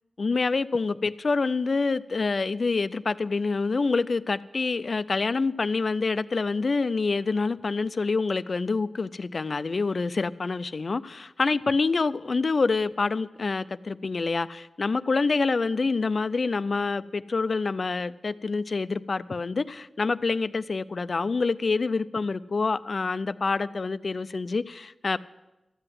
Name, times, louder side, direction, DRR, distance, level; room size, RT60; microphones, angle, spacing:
voice 1, 0.2-25.2, left 4 dB, 55° left, 0.4 m, -27 dB
13.5 x 7.9 x 7.5 m
wide cardioid pair, 70°, 0 cm